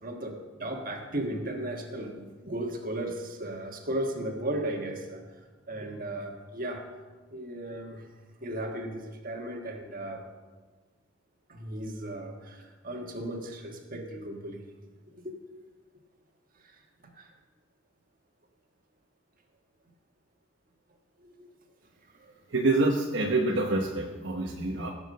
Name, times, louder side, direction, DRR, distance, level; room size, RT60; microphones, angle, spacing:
voice 1, 0.0-5.4 5.7-6.9 7.3-8.1 8.4-10.3 11.5-14.6 15.1-15.4 16.6-16.8 17.1-17.3 21.2-21.5 22.1-22.3, right 1 dB, 45° right, 3 dB, 1.6 m, -36 dB
voice 2, 22.5-24.9, right 2 dB, 60° right, 1 dB, 1.1 m, -26 dB
16.5 x 7.3 x 6.6 m, 1.3 s
head